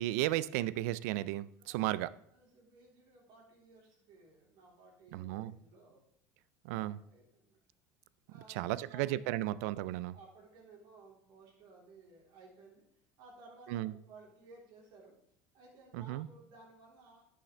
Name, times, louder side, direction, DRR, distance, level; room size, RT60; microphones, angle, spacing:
voice 1, 0.0-2.1 5.1-5.5 6.6-6.9 8.5-10.1 13.7-13.9 15.9-16.3, right 15 dB, 80° right, 18 dB, 0.4 m, -34 dB
voice 2, 1.6-2.0 2.3-6.0 6.7-7.6 8.3-9.2 10.1-12.8 13.2-15.1 15.5-17.2, right 3 dB, 65° right, -3 dB, 3.5 m, -58 dB
11.0 x 6.6 x 3.3 m, 0.70 s
supercardioid pair, 100°, 8 cm